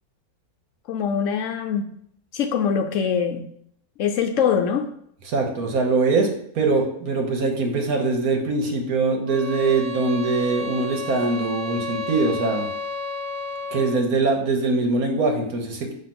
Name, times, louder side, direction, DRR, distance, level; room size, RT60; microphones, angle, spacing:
voice 1, 0.9-1.9 2.3-3.5 4.0-4.9, left 7 dB, 65° left, 6 dB, 0.8 m, -23 dB
voice 2, 5.3-6.3 6.5-12.7 13.7-15.9, right 3 dB, 75° right, 2 dB, 1.6 m, -22 dB
sound 1, 9.3-14.0, left 3 dB, 50° right, 1.1 m, -32 dB
6.6 x 3.0 x 5.9 m, 0.68 s
omnidirectional pair, 1.6 m